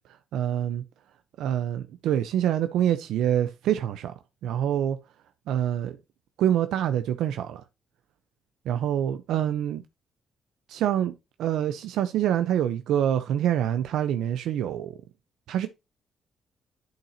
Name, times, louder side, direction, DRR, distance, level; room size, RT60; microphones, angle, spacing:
voice 1, 0.3-0.8 1.4-4.1 4.4-5.0 5.5-6.0 6.4-7.6 8.7-9.8 10.7-11.1 11.4-15.0 15.5-15.7, right 10 dB, 85° right, 0.5 m, -26 dB
10.5 x 5.7 x 2.6 m
cardioid pair, 90°, 0 cm